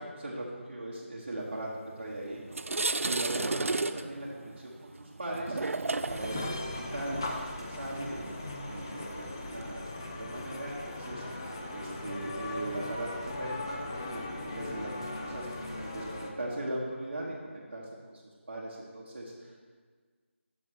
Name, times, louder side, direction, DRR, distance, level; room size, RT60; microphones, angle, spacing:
voice 1, 0.2-1.7 2.0-4.3 4.6-5.6 6.1-13.1 13.3-14.9 15.2-18.2 18.5-19.6, right 1 dB, 40° right, -7 dB, 1.1 m, -39 dB
sound 1, 1.9-2.0 2.4-9.7, right 3 dB, 90° right, 0.4 m, -34 dB
sound 2, 6.1-16.3, left 2 dB, 20° left, 0.4 m, -39 dB
6.2 x 5.6 x 6.2 m, 1.5 s
figure-of-eight pair, 175°, 7 cm